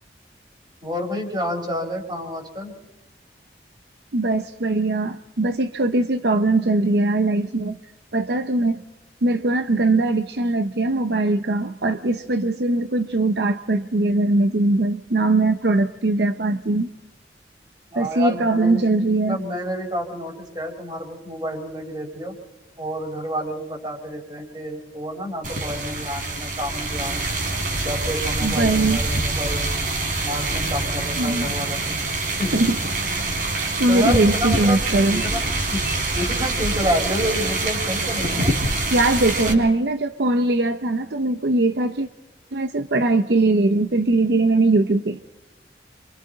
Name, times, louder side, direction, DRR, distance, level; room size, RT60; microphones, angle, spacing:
voice 1, 0.8-2.7 17.9-22.3 22.8-27.3 27.7-29.7 30.2-32.1 32.4-32.6 33.9-34.8 35.1-38.6 39.1-39.6, equal, 25° right, 1 dB, 4.5 m, -29 dB
voice 2, 4.1-7.8 8.1-8.8 9.2-16.9 18.0-19.4 28.4-29.0 31.2-31.5 32.5-32.8 33.5-35.2 38.9-42.1 42.5-45.2, right 2 dB, 70° right, 9 dB, 0.8 m, -21 dB
sound 1, 25.4-39.5, right 2 dB, 50° right, 3.6 m, -25 dB
28.5 x 26.0 x 4.1 m, 1.1 s
head